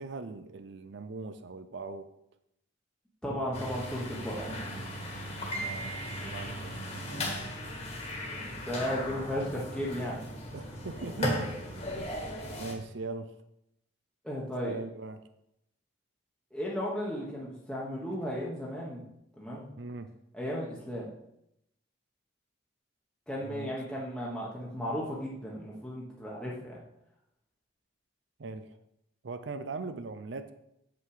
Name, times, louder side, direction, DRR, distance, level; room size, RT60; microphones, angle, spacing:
voice 1, 0.0-2.1 5.4-7.4 8.9-9.5 10.5-11.7 12.0-12.2 12.6-13.3 14.6-15.2 19.8-20.1 23.4-23.8 28.4-28.7 29.2-30.5, right 3 dB, 60° right, 10 dB, 0.5 m, -41 dB
voice 2, 3.2-4.6 8.4-10.3 14.2-14.8 16.5-19.0 19.4-19.7 20.3-21.1 23.3-26.8, equal, 5° left, -6 dB, 1.2 m, -35 dB
sound 1, 3.5-12.7, equal, 35° left, 1.7 m, -36 dB
7.6 x 5.9 x 4.9 m, 0.80 s
head